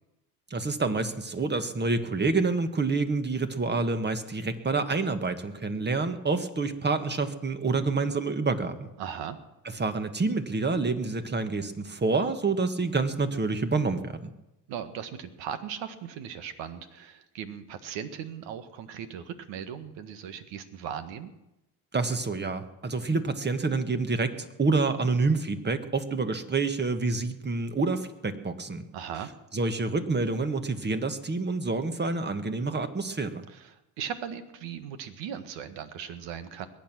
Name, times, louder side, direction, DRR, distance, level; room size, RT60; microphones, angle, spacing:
voice 1, 0.5-8.9 9.8-14.3 21.9-28.8 29.5-33.4, right 3 dB, 25° right, 9 dB, 1.6 m, -28 dB
voice 2, 9.0-9.4 14.7-21.3 28.9-29.3 33.5-36.7, right 8 dB, 70° right, 11 dB, 1.6 m, -38 dB
21.5 x 9.2 x 6.2 m, 0.93 s
supercardioid pair, 80°, 45 cm